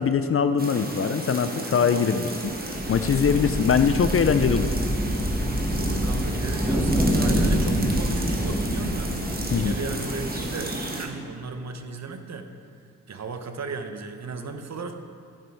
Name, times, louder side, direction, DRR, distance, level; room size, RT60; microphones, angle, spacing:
voice 1, 0.0-2.5 2.9-4.7 9.5-9.7, left 6 dB, 40° left, 10 dB, 0.5 m, -22 dB
sound 1, 0.6-11.1, right 2 dB, 25° right, 1.4 m, -33 dB
sound 2, 2.4-10.9, equal, ahead, 1.7 m, -26 dB
voice 2, 3.4-4.1 5.7-9.2 9.5-12.5 13.1-14.9, right 4 dB, 45° right, 7 dB, 0.8 m, -36 dB
11.5 x 6.1 x 4.6 m, 2.3 s
cardioid pair, 60°, 36 cm